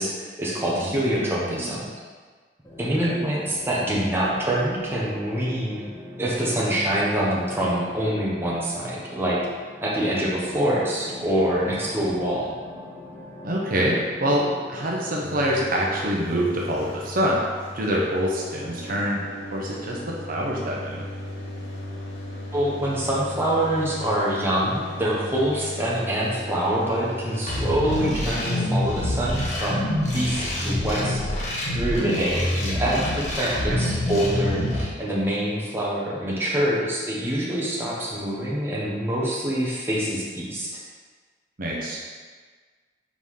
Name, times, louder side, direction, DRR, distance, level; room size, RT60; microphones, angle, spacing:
voice 1, 0.0-1.8 2.8-5.8 6.2-9.4 9.8-12.5 22.5-31.2 31.7-40.7, right 1 dB, 15° right, -6 dB, 1.1 m, -25 dB
voice 2, 0.7-1.7 3.0-3.1 13.4-17.4 17.7-19.2 19.5-21.0 33.7-33.8 41.6-42.0, equal, 50° right, -3 dB, 0.8 m, -26 dB
sound 1, 2.6-17.9, left 1 dB, 15° left, 0.8 m, -43 dB
sound 2, 15.2-28.1, left 1 dB, 90° left, 1.7 m, -37 dB
sound 3, 27.5-34.8, left 1 dB, 40° left, 1.2 m, -26 dB
4.9 x 4.0 x 5.5 m, 1.5 s
head